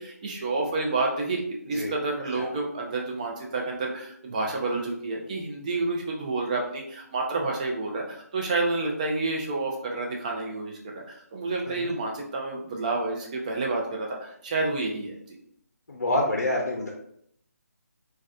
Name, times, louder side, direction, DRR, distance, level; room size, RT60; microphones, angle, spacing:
voice 1, 0.0-15.4, right 3 dB, 25° right, 0 dB, 0.4 m, -29 dB
voice 2, 15.9-16.9, left 1 dB, 75° left, -1 dB, 0.5 m, -27 dB
2.2 x 2.2 x 2.5 m, 0.68 s
figure-of-eight pair, 155°, 9 cm